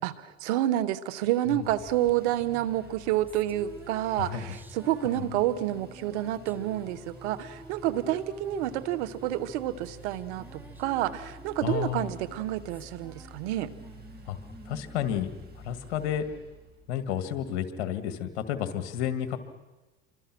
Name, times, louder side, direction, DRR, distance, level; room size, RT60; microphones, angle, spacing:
voice 1, 0.0-13.7, right 13 dB, 85° right, 15 dB, 1.4 m, -29 dB
Engine, 1.2-16.9, right 1 dB, 30° right, 6.8 m, -50 dB
sound 1, 2.8-16.4, equal, 5° right, 1.8 m, -49 dB
voice 2, 11.6-12.1 14.3-14.4 14.7-15.3 15.6-16.3 16.9-19.4, left 10 dB, 85° left, 10 dB, 2.1 m, -31 dB
28.5 x 24.5 x 6.2 m, 1.1 s
supercardioid pair, 95°, 34 cm